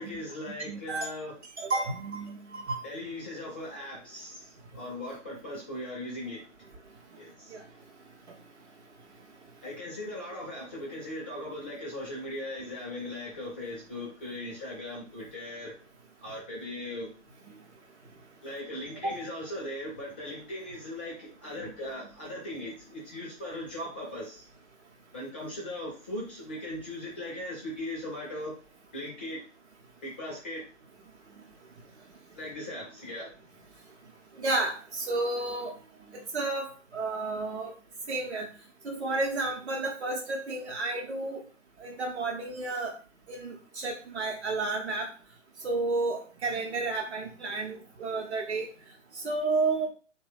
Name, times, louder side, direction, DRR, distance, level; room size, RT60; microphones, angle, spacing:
voice 1, 0.0-1.3 2.8-4.5 4.7-6.4 7.2-7.5 9.6-15.7 16.2-17.1 18.4-24.4 25.1-28.5 28.9-29.4 30.0-30.6 32.4-33.3, left 1 dB, 10° left, -5 dB, 0.4 m, -38 dB
voice 2, 0.7-1.1 1.6-2.8 7.5-7.7 8.3-8.4 17.5-17.6 19.0-19.2 21.6-21.7 34.3-35.7 36.1-37.7 38.1-38.5 38.8-41.4 41.8-42.9 43.3-45.1 45.6-48.7 49.1-49.9, right 3 dB, 60° right, -1 dB, 0.8 m, -31 dB
3.2 x 2.2 x 3.2 m, 0.38 s
figure-of-eight pair, 130°, 38 cm